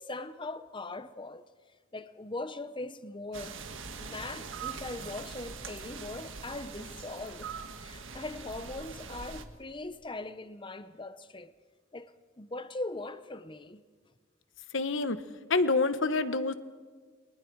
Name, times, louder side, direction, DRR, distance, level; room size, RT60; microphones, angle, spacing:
voice 1, 0.0-1.4 1.9-3.6 4.0-11.5 11.9-13.8, left 2 dB, 25° left, 0.8 m, -40 dB
sound 1, 3.3-9.4, right 5 dB, 65° right, 1.7 m, -42 dB
voice 2, 14.7-15.2 15.5-16.5, left 3 dB, 65° left, 1.1 m, -27 dB
29.5 x 24.0 x 4.7 m
head